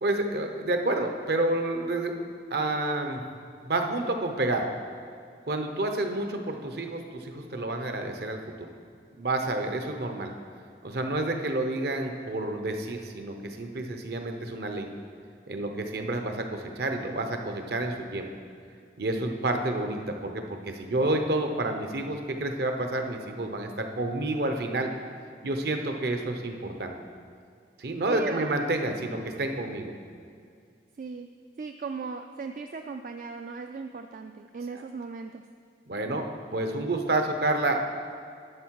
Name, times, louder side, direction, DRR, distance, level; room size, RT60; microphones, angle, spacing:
voice 1, 0.0-2.1 2.5-3.2 3.6-4.7 5.5-8.7 9.2-10.3 10.8-14.9 15.5-18.3 19.0-24.9 25.4-26.9 27.8-29.9 35.9-37.8, right 2 dB, 65° right, 5 dB, 0.8 m, -29 dB
voice 2, 28.1-28.5 31.0-31.3 31.6-35.4, right 4 dB, 50° right, 6 dB, 0.3 m, -37 dB
11.0 x 6.5 x 4.7 m, 2.3 s
head